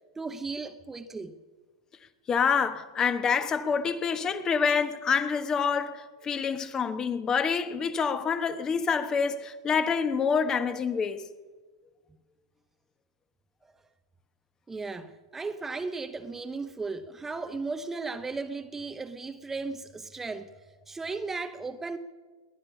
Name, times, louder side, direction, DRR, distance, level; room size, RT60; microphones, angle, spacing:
voice 1, 0.2-1.3 14.7-20.5 20.9-22.0, right 4 dB, 10° right, 0.7 m, -36 dB
voice 2, 2.3-11.2, left 6 dB, 20° left, 1.0 m, -27 dB
19.5 x 10.5 x 6.9 m
hypercardioid pair, 115°, 3 cm